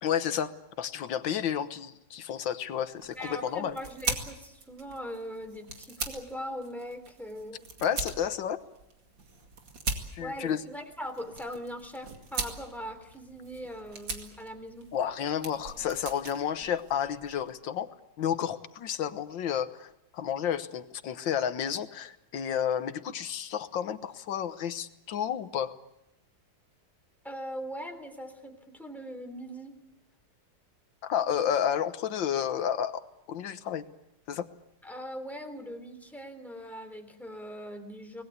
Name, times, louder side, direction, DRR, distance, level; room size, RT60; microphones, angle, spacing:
voice 1, 0.0-3.8 7.8-8.6 10.1-10.6 14.9-17.9 18.2-25.7 31.0-33.8 34.3-34.5, left 9 dB, 75° left, 11 dB, 1.8 m, -31 dB
sound 1, 3.0-17.5, right 4 dB, 70° right, 3.0 m, -40 dB
voice 2, 3.1-7.6 10.2-14.9 27.2-29.7 34.8-38.2, equal, ahead, 5 dB, 3.3 m, -40 dB
25.5 x 20.0 x 8.2 m, 0.86 s
omnidirectional pair, 2.1 m